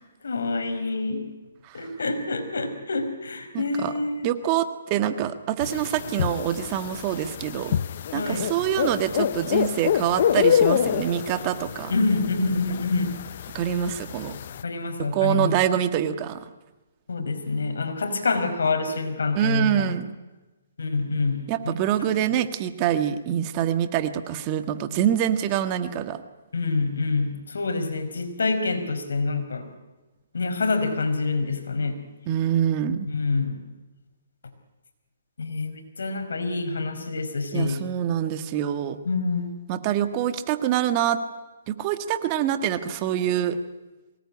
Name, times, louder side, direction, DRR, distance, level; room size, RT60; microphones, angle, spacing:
voice 1, 0.2-1.2 1.7-4.3 8.1-8.5 11.9-13.2 14.6-15.5 17.1-19.9 20.8-22.1 26.5-29.7 30.3-32.0 33.1-33.6 35.4-37.8 39.1-39.5, left 3 dB, 85° left, 7 dB, 5.0 m, -26 dB
voice 2, 3.5-3.9 4.2-7.8 8.1-11.9 13.5-14.4 15.0-16.5 19.3-20.1 21.5-26.2 32.3-33.1 37.5-39.0 39.7-41.2 41.7-43.6, right 10 dB, 30° right, 10 dB, 1.6 m, -25 dB
sound 1, 5.6-14.6, left 9 dB, 50° left, 0.8 m, -27 dB
24.0 x 19.5 x 9.9 m, 1.1 s
hypercardioid pair, 155°, 0 cm